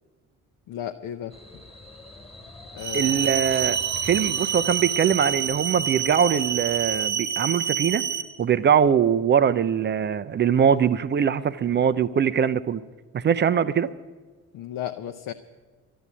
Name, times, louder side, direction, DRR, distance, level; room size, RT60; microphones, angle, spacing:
voice 1, 0.7-1.3 2.7-3.3 14.5-15.3, left 11 dB, 50° left, 7 dB, 0.7 m, -34 dB
sound 1, 1.3-7.1, left 2 dB, 15° left, 1.6 m, -44 dB
sound 2, 2.8-8.2, right 8 dB, 45° right, 1.2 m, -27 dB
voice 2, 2.9-3.8 4.0-8.0 8.4-12.8 13.1-13.9, right 8 dB, 25° right, 14 dB, 0.5 m, -22 dB
12.0 x 9.4 x 9.8 m, 1.3 s
figure-of-eight pair, 45°, 43 cm